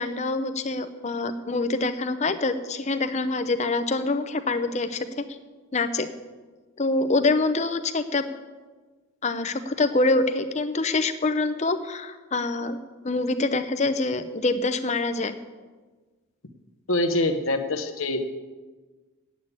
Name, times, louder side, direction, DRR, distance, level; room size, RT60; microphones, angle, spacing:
voice 1, 0.0-5.2 5.7-6.1 6.8-8.2 9.2-12.8 13.0-15.3, left 3 dB, 30° left, 10 dB, 0.6 m, -25 dB
voice 2, 16.9-18.2, left 2 dB, 65° left, 7 dB, 1.0 m, -24 dB
8.9 x 8.3 x 8.5 m, 1.3 s
head